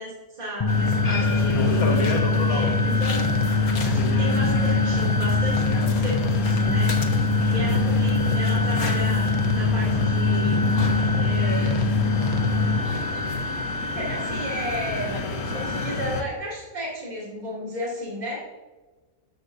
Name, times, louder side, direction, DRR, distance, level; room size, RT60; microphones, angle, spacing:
voice 1, 0.0-2.1 2.5-10.6 11.2-11.9 13.7-18.4, equal, 25° right, -6 dB, 3.2 m, -34 dB
sound 1, 0.6-12.8, left 3 dB, 30° left, 0.5 m, -22 dB
sound 2, 0.7-16.2, left 2 dB, 60° left, 1.6 m, -29 dB
14.5 x 11.0 x 2.8 m, 1.3 s
omnidirectional pair, 1.7 m